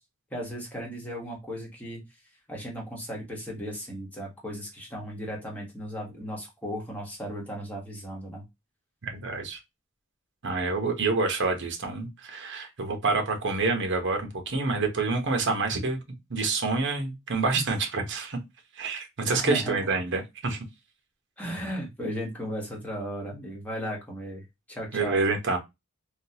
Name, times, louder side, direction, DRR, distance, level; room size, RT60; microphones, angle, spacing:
voice 1, 0.3-2.0 2.5-8.4 19.3-19.8 21.4-25.2, equal, 10° left, 1.2 m, -36 dB
voice 2, 9.0-9.6 10.4-16.0 16.3-18.4 18.8-20.6 24.9-25.6, right 3 dB, 60° right, 0.9 m, -27 dB
3.6 x 2.3 x 2.7 m
head